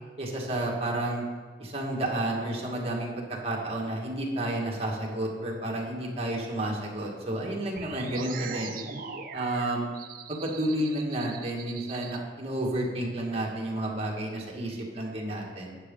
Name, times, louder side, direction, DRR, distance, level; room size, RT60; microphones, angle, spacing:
voice 1, 0.2-1.2 1.6-8.8 9.3-9.9 10.3-15.8, right 1 dB, 35° right, -2 dB, 1.8 m, -31 dB
sound 1, 7.8-12.2, right 5 dB, 50° right, 0.6 m, -40 dB
11.5 x 8.4 x 3.9 m, 1.5 s
head